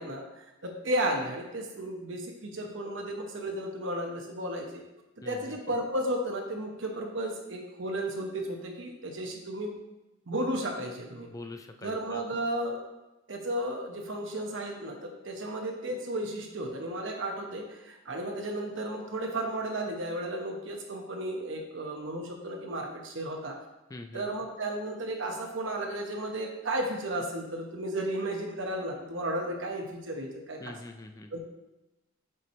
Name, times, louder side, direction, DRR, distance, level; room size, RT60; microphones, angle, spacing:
voice 1, 0.0-4.8 5.2-9.7 10.3-11.3 11.8-12.8 13.3-23.6 24.1-30.8 31.3-31.4, right 1 dB, 65° right, 2 dB, 1.0 m, -34 dB
voice 2, 5.2-5.6 11.3-12.2 23.9-24.3 30.6-31.3, left 2 dB, 15° left, 5 dB, 0.3 m, -44 dB
6.7 x 3.3 x 4.2 m, 0.97 s
head